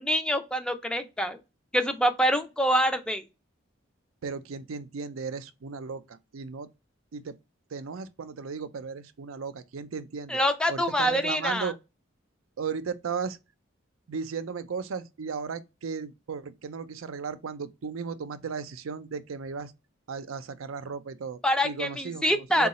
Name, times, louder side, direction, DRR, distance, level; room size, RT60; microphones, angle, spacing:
voice 1, 0.0-1.4 1.7-3.2 10.3-11.7 21.4-22.7, equal, 5° left, 0.4 m, -25 dB
voice 2, 4.2-6.7 7.1-7.3 7.7-10.4 10.7-11.8 12.6-13.4 14.1-19.7 20.1-22.7, right 5 dB, 90° right, 0.5 m, -35 dB
3.8 x 2.3 x 4.1 m
head